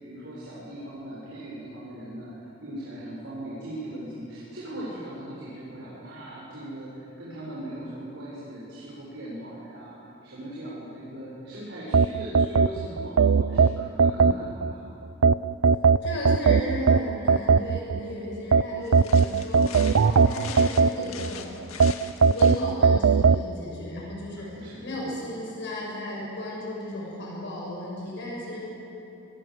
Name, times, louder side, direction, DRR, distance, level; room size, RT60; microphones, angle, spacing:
voice 1, 0.0-10.0 10.2-14.8 24.4-24.9, right 1 dB, 60° right, -7 dB, 6.7 m, -39 dB
sound 1, 11.9-14.7 15.2-18.0 18.5-21.3 21.8-23.4, right 5 dB, 80° right, 0.5 m, -19 dB
voice 2, 16.0-21.5 22.2-28.7, left 1 dB, 60° left, -3 dB, 6.9 m, -35 dB
sound 2, 18.8-22.9, left 6 dB, 90° left, 2.0 m, -42 dB
27.0 x 20.0 x 7.9 m, 2.9 s
head